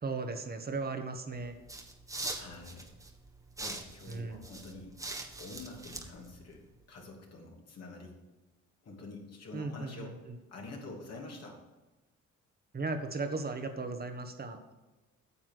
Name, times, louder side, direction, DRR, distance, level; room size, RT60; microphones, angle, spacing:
voice 1, 0.0-1.6 4.1-4.4 9.5-10.3 12.7-14.6, right 3 dB, 30° right, 6 dB, 1.6 m, -36 dB
sound 1, 1.3-6.9, right 2 dB, 10° right, 1.6 m, -44 dB
voice 2, 2.3-2.9 3.6-4.9 5.4-8.2 8.8-10.2 10.5-11.6, left 2 dB, 55° left, -1 dB, 3.0 m, -47 dB
9.6 x 7.2 x 6.3 m, 1.1 s
cardioid pair, 90°, 30 cm